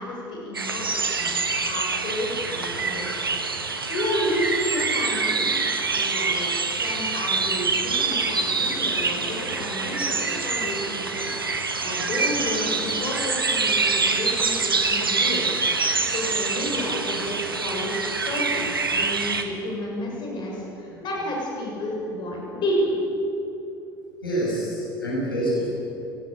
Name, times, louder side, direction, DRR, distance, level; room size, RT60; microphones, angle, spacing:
voice 1, 0.0-3.3 3.6-5.5 5.9-23.0, left 1 dB, 40° left, -1 dB, 6.4 m, -31 dB
sound 1, 0.5-19.4, right 4 dB, 85° right, 1.5 m, -25 dB
voice 2, 24.2-25.7, right 1 dB, 85° left, -5 dB, 7.4 m, -26 dB
21.5 x 18.0 x 8.7 m, 2.9 s
figure-of-eight pair, 65°, 12 cm